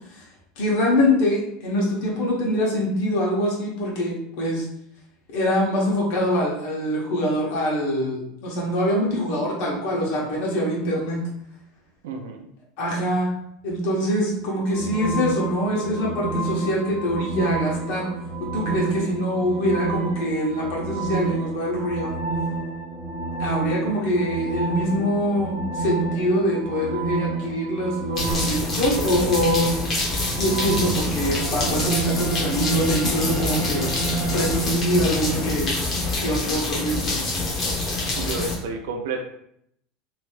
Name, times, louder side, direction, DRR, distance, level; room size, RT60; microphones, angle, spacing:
voice 1, 0.6-4.6 5.3-11.2 12.8-13.3 13.6-18.1 18.5-22.2 23.4-29.7 30.2-33.9 34.3-35.7 36.2-37.2, equal, 55° left, -3 dB, 1.3 m, -24 dB
voice 2, 12.0-12.5 38.1-39.2, right 4 dB, 85° right, 3 dB, 0.5 m, -30 dB
sound 1, 14.7-34.6, right 3 dB, 5° right, 0.8 m, -29 dB
sound 2, 28.1-38.6, left 2 dB, 25° left, 0.9 m, -26 dB
3.3 x 3.0 x 3.2 m, 0.72 s
supercardioid pair, 170°, 0 cm